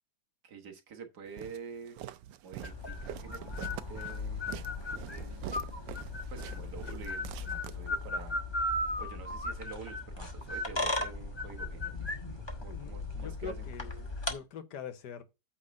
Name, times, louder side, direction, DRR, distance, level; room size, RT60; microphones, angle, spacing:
voice 1, 0.4-2.0 2.4-4.4 5.0-5.7 6.3-8.4 9.0-11.9 12.3-13.7, right 6 dB, 65° right, 1.8 m, -47 dB
Walk footsteps, 1.4-8.3, right 13 dB, 90° right, 1.3 m, -45 dB
sound 1, 2.6-14.3, left 2 dB, 20° left, 0.9 m, -36 dB
voice 2, 12.7-15.2, left 8 dB, 70° left, 1.5 m, -44 dB
8.8 x 3.4 x 6.4 m
omnidirectional pair, 2.0 m